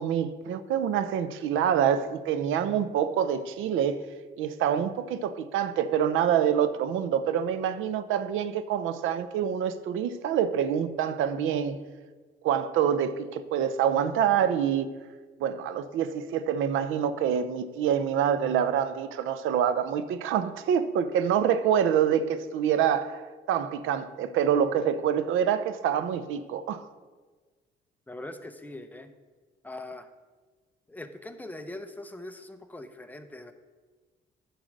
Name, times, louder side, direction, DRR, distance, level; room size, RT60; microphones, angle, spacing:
voice 1, 0.0-4.0 4.4-11.8 12.4-14.9 15.4-23.2 23.5-26.9, right 8 dB, 90° right, 0.7 m, -26 dB
voice 2, 28.1-29.1 29.6-30.1 30.9-33.5, left 2 dB, 10° left, 0.8 m, -41 dB
10.0 x 4.8 x 6.5 m
cardioid pair, 90°, 20 cm